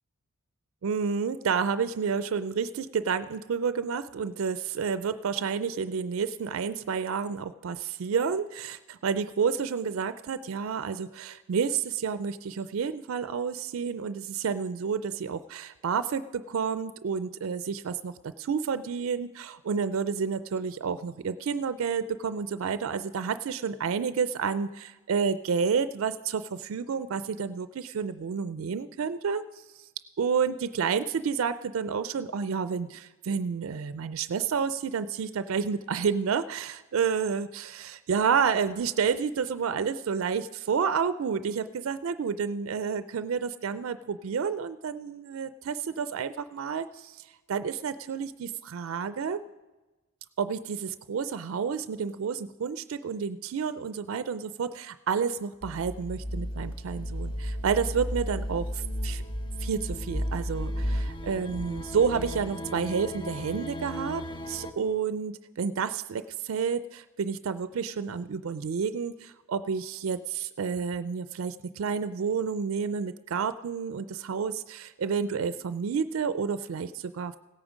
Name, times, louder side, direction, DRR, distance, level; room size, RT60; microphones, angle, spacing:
voice 1, 0.8-29.4 29.8-29.9 30.2-49.4 50.4-59.2 59.6-77.4, right 6 dB, 70° right, 13 dB, 0.4 m, -30 dB
sound 1, 55.6-64.7, equal, 25° left, 0.5 m, -34 dB
16.5 x 8.8 x 5.0 m, 1.1 s
head